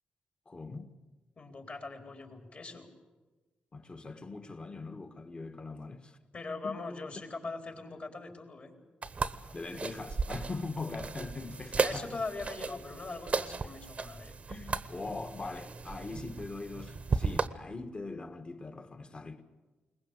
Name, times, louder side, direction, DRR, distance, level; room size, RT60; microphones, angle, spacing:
voice 1, 0.5-1.0 3.7-6.2 6.6-6.8 9.5-12.2 14.5-19.4, left 3 dB, 35° left, 1.7 m, -41 dB
voice 2, 1.4-2.9 6.3-8.7 11.8-14.3, left 3 dB, 50° left, 3.9 m, -41 dB
sound 1, 9.0-17.5, right 4 dB, 45° right, 1.0 m, -35 dB
22.0 x 19.5 x 8.2 m
cardioid pair, 80°, 3 cm